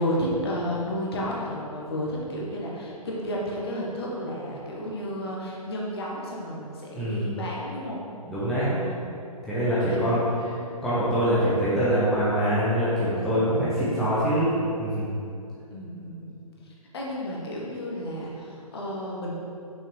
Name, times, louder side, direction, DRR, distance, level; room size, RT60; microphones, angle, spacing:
voice 1, 0.0-8.0 8.4-9.1 9.9-10.1 10.4-10.6 13.5-14.0 15.7-16.4 16.7-19.3, equal, 40° left, -3 dB, 1.3 m, -32 dB
voice 2, 6.9-7.3 8.3-8.7 9.4-10.5 10.8-14.5 14.8-15.1, equal, ahead, -11 dB, 0.7 m, -24 dB
6.1 x 5.8 x 3.3 m, 2.7 s
figure-of-eight pair, 130°, 19 cm